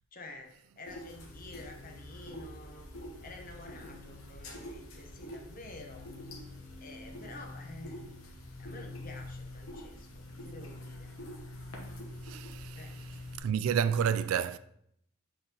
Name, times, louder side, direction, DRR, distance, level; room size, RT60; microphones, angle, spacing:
voice 1, 0.1-2.9 3.2-6.1 6.8-8.0 8.6-11.1 12.7-13.0, left 2 dB, 45° left, 0.9 m, -49 dB
sound 1, 0.8-13.4, left 1 dB, 90° left, 1.2 m, -45 dB
voice 2, 12.2-12.9 13.4-14.6, right 8 dB, 85° right, 0.3 m, -30 dB
7.8 x 4.0 x 3.0 m
head